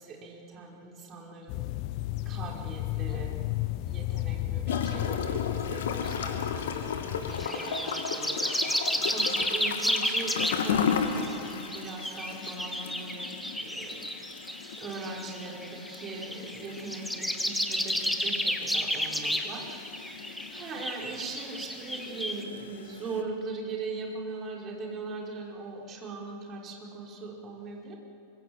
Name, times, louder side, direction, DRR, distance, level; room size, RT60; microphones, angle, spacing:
voice 1, 0.0-1.6 2.3-3.3 3.8-6.9 7.2-8.6 9.0-13.3 13.6-14.0 14.8-20.0 20.5-28.0, right 4 dB, 30° right, -1 dB, 5.2 m, -40 dB
sound 1, 1.5-7.5, left 15 dB, 45° left, 0.7 m, -33 dB
Gurgling / Toilet flush, 4.7-23.2, left 6 dB, 60° left, 2.2 m, -36 dB
sound 2, 7.3-22.4, equal, ahead, 1.9 m, -32 dB
25.5 x 23.0 x 8.1 m, 2.7 s
figure-of-eight pair, 90°, 0 cm